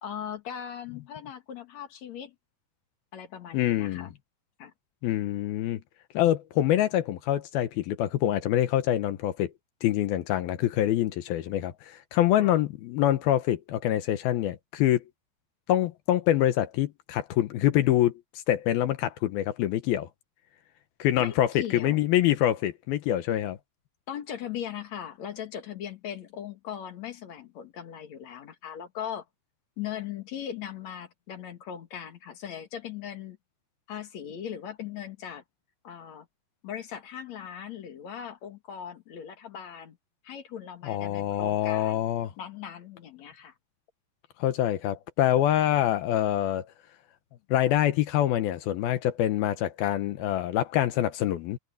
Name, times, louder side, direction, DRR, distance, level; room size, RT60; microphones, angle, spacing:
voice 1, 0.0-2.3 3.1-4.1 4.6-4.7 12.4-12.5 21.2-22.0 24.1-29.2 29.8-33.4 33.9-35.4 35.8-36.3 36.6-40.0 40.2-42.0 42.4-43.6, left 9 dB, 55° left, 2.7 m, -39 dB
voice 2, 3.5-4.1 5.0-5.8 6.1-9.5 9.8-15.0 15.7-18.1 18.5-20.1 21.0-23.6 40.8-42.3 44.4-46.7 47.5-51.6, left 12 dB, 75° left, 2.8 m, -25 dB
omnidirectional pair, 4.4 m